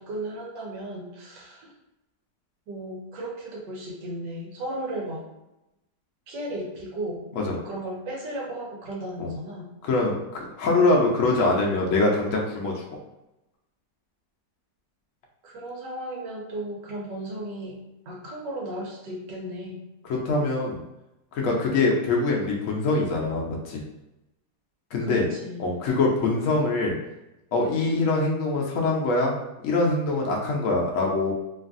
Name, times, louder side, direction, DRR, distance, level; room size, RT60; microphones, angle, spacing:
voice 1, 0.0-1.7 2.7-5.2 6.3-7.2 7.5-9.7 15.4-17.8 18.1-19.8 25.0-25.7, right 1 dB, 85° right, -2 dB, 1.4 m, -35 dB
voice 2, 9.8-12.9 20.1-20.8 21.3-23.8 24.9-25.3 25.6-27.0 27.5-29.3 29.6-31.3, left 2 dB, 70° left, -2 dB, 0.8 m, -23 dB
3.1 x 2.3 x 2.5 m, 0.93 s
omnidirectional pair, 1.9 m